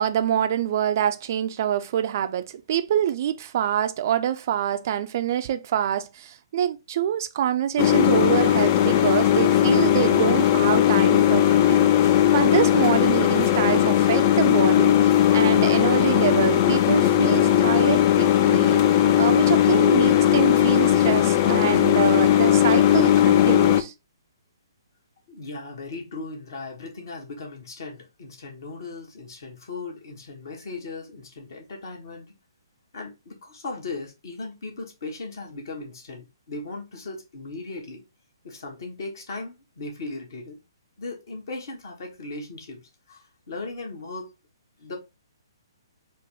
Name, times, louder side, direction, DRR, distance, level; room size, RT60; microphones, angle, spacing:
voice 1, 0.0-23.9, right 10 dB, 40° right, 0.3 m, -26 dB
sound 1, 7.8-23.8, left 11 dB, 35° left, 0.4 m, -18 dB
voice 2, 25.3-32.3 32.9-38.0 38.4-40.6 41.0-42.8 43.1-44.3 44.8-45.0, left 3 dB, 50° left, 1.3 m, -37 dB
4.3 x 2.2 x 3.4 m
figure-of-eight pair, 125°, 2 cm